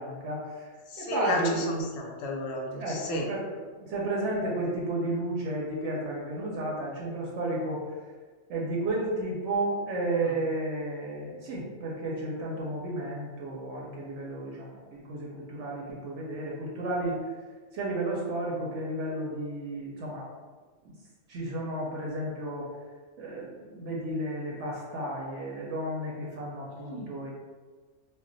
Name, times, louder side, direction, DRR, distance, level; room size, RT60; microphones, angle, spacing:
voice 1, 0.0-0.7 1.0-1.7 2.8-7.8 8.5-17.2 17.7-20.3 20.8-20.9 21.3-22.7 23.2-27.3, right 1 dB, 75° right, -3 dB, 0.9 m, -32 dB
voice 2, 0.9-3.3 10.2-10.4 26.8-27.1, left 2 dB, 65° left, 0 dB, 0.8 m, -33 dB
2.2 x 2.1 x 3.7 m, 1.4 s
omnidirectional pair, 1.3 m